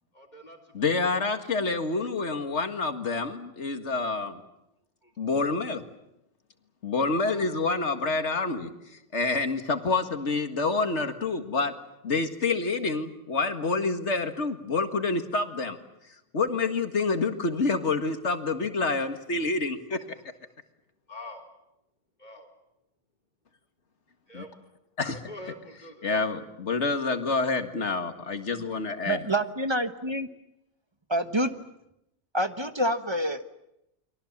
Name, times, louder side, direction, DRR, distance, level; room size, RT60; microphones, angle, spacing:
voice 1, 0.1-1.1 5.0-5.1 7.2-7.7 9.0-9.1 21.1-21.4 22.2-22.5 24.3-24.5 25.0-26.1, left 1 dB, 40° left, 5 dB, 4.0 m, -45 dB
voice 2, 0.7-4.4 5.2-5.8 6.8-8.7 9.1-11.7 12.0-15.8 16.3-20.0 24.3-24.4 25.0-25.2 26.0-29.3, left 3 dB, 75° left, 7 dB, 2.2 m, -27 dB
voice 3, 29.1-30.3 31.1-31.5 32.3-33.4, right 1 dB, 25° right, 9 dB, 1.2 m, -27 dB
29.5 x 23.0 x 7.3 m, 0.85 s
omnidirectional pair, 1.2 m